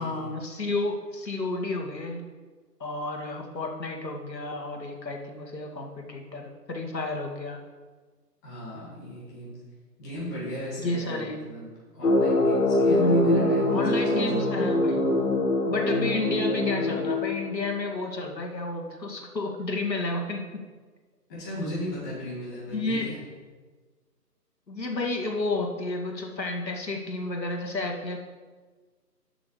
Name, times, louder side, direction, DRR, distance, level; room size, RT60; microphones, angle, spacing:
voice 1, 0.0-2.2 2.8-7.6 10.8-11.4 12.9-15.0 15.7-20.6 22.7-23.1 24.7-28.2, left 2 dB, 85° left, 2 dB, 2.2 m, -31 dB
voice 2, 8.4-9.6 10.0-14.2 21.3-23.2, equal, 10° left, -14 dB, 2.3 m, -37 dB
sound 1, 12.0-17.8, left 2 dB, 60° left, 1.7 m, -24 dB
11.5 x 6.2 x 5.0 m, 1.4 s
hypercardioid pair, 170°, 49 cm